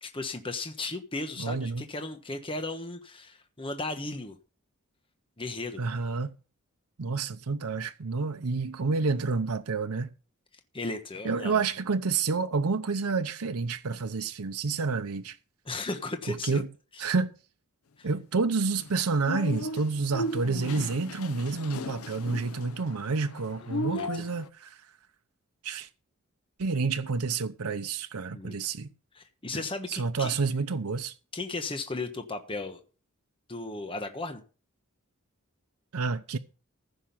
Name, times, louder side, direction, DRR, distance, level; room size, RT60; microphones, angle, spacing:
voice 1, 0.0-4.4 5.4-5.8 10.7-11.6 15.6-16.6 17.0-17.1 18.0-18.1 23.6-24.3 28.3-28.6 29.1-30.4 31.3-32.8 33.5-34.4, left 2 dB, 25° left, 1.2 m, -36 dB
voice 2, 1.4-1.8 5.8-6.3 7.0-10.1 11.2-15.4 16.3-16.7 17.0-17.3 18.0-24.9 25.6-25.9 26.6-28.9 29.5-31.1 35.9-36.4, right 4 dB, 80° right, 0.7 m, -29 dB
sound 1, 18.7-24.5, left 1 dB, 80° left, 0.8 m, -36 dB
15.0 x 6.2 x 5.6 m
head